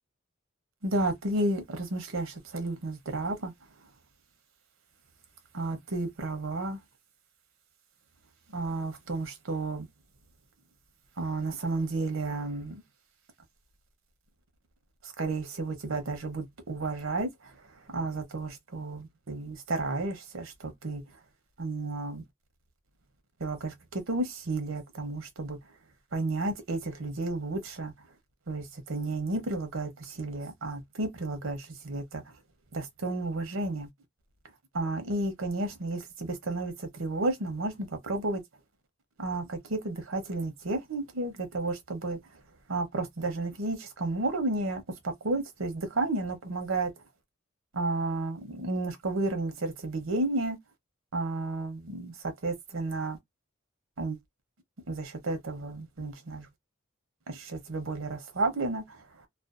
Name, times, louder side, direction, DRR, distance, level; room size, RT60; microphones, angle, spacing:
voice 1, 0.8-3.5 5.5-6.8 8.5-9.9 11.2-12.8 15.0-21.0 21.6-22.2 23.4-25.6 26.1-27.9 28.5-32.3 32.7-33.9 34.7-38.4 39.2-42.2 42.7-46.9 47.7-50.6 51.1-53.2 54.0-54.2 54.9-56.5 57.3-59.3, right 2 dB, 75° right, 0.8 m, -32 dB
2.5 x 2.2 x 2.4 m
head